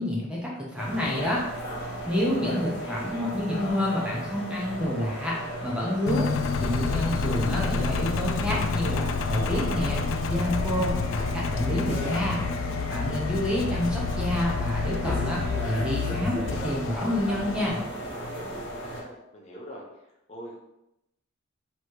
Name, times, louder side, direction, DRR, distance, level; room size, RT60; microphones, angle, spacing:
voice 1, 0.0-1.4 2.1-6.3 6.6-12.4 12.9-17.8, left 1 dB, 5° right, -4 dB, 0.9 m, -28 dB
sound 1, 0.8-19.0, right 1 dB, 55° left, 1.1 m, -36 dB
Engine, 6.1-17.7, left 5 dB, 75° left, 0.3 m, -29 dB
voice 2, 18.8-19.8 20.3-20.6, equal, 30° left, -3 dB, 1.0 m, -44 dB
3.2 x 3.1 x 4.5 m, 0.87 s
head